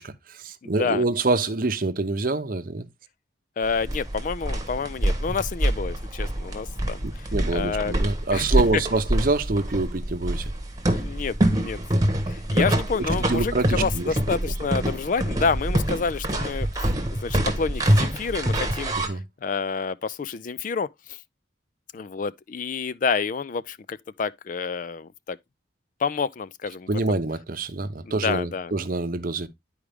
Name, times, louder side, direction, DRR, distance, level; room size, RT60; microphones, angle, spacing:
voice 1, 0.0-2.9 7.0-10.5 12.5-12.6 13.3-14.1 19.0-19.2 26.9-29.5, right 3 dB, 45° right, 0.8 m, -26 dB
voice 2, 0.6-1.0 3.6-7.9 8.3-8.5 10.9-16.7 17.2-21.2 21.9-25.4 26.0-27.0 28.0-28.7, left 5 dB, 40° left, 0.3 m, -29 dB
sound 1, 3.6-19.1, right 1 dB, 20° right, 1.2 m, -25 dB
10.0 x 4.7 x 3.4 m
head